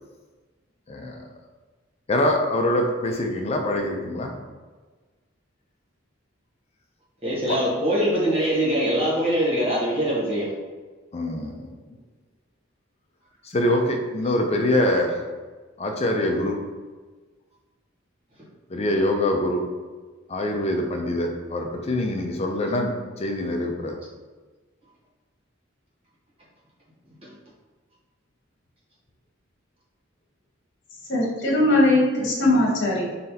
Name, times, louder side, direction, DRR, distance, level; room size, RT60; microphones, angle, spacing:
voice 1, 0.9-1.2 2.1-4.3 7.5-7.6 11.1-11.6 13.5-15.2 15.8-16.6 18.7-19.6 20.3-24.0, left 1 dB, 35° left, 3 dB, 0.5 m, -24 dB
voice 2, 7.2-10.5 22.2-22.3 27.2-27.3, right 1 dB, 30° right, -7 dB, 1.3 m, -23 dB
voice 3, 31.1-33.1, left 1 dB, 60° left, -3 dB, 1.2 m, -20 dB
4.0 x 3.2 x 2.8 m, 1.3 s
head